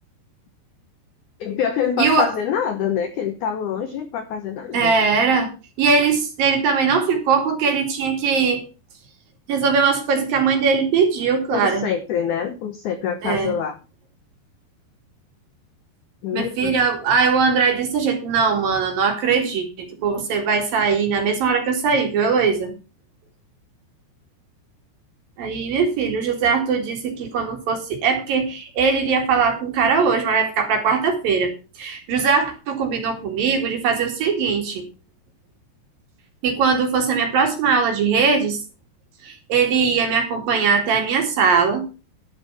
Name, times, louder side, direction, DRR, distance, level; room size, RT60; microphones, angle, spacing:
voice 1, 1.4-4.9 11.5-13.7 16.2-16.8, left 8 dB, 75° left, 8 dB, 1.8 m, -25 dB
voice 2, 2.0-2.3 4.7-5.5 5.8-8.6 9.5-11.9 13.2-13.6 16.3-22.7 25.4-31.5 31.8-34.8 36.4-38.6 39.2-41.9, right 5 dB, 60° right, 3 dB, 3.9 m, -20 dB
11.5 x 7.6 x 5.7 m, 0.31 s
omnidirectional pair, 5.0 m